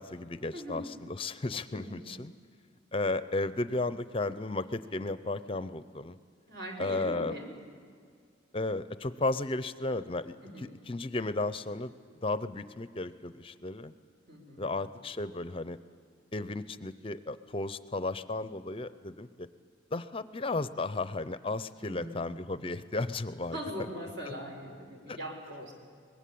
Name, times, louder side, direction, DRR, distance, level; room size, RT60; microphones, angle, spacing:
voice 1, 0.0-2.3 2.9-6.2 6.8-7.3 8.5-11.9 12.2-13.9 14.6-15.8 16.3-19.5 19.9-23.6 25.1-25.2, left 2 dB, 30° left, 13 dB, 0.6 m, -34 dB
voice 2, 0.5-0.9 1.7-2.1 6.5-7.5 10.4-10.7 14.3-14.6 21.8-22.2 23.5-25.7, equal, 60° right, 1 dB, 5.1 m, -41 dB
24.0 x 21.0 x 8.5 m, 2.2 s
head